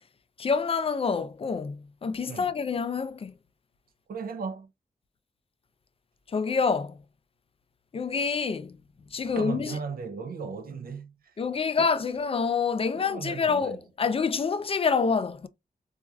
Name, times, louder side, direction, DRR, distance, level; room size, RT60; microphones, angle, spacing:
voice 1, 0.4-3.3 6.3-7.0 7.9-8.8 9.1-9.8 11.4-15.5, left 5 dB, 40° left, 0.4 m, -27 dB
voice 2, 4.1-4.7 9.2-11.3 11.8-11.9 12.9-13.8, right 5 dB, 80° right, 0.5 m, -36 dB
4.2 x 2.4 x 2.3 m
wide cardioid pair, 105°, 15 cm